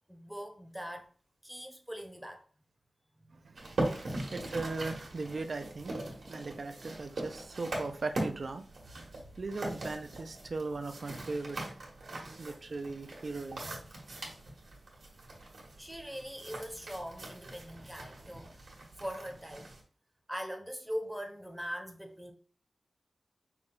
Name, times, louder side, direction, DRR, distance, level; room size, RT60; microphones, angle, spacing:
voice 1, 0.1-1.1 1.4-2.4 3.2-3.5 15.8-19.7 20.3-22.3, equal, 5° right, 0.8 m, -42 dB
voice 2, 3.3-3.8 4.3-6.0 6.3-8.7 8.9-9.1 9.4-11.6 12.4-13.8, right 3 dB, 55° right, 0.5 m, -38 dB
sound 1, 3.6-19.8, right 2 dB, 80° right, 1.6 m, -41 dB
5.8 x 2.3 x 3.8 m
wide cardioid pair, 110°, 0 cm